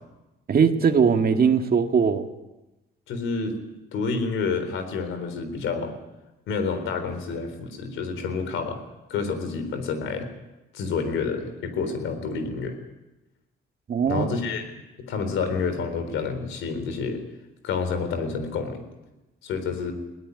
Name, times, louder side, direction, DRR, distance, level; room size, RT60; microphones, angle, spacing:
voice 1, 0.5-2.3 13.9-14.3, right 6 dB, 50° right, 6 dB, 2.0 m, -20 dB
voice 2, 3.1-3.6 3.9-5.9 6.5-8.8 9.1-10.3 10.7-12.8 14.0-14.7 15.0-17.2 17.6-18.8 19.4-19.9, left 4 dB, 85° left, 8 dB, 4.0 m, -29 dB
21.0 x 17.0 x 9.7 m, 1.0 s
cardioid pair, 90°, 20 cm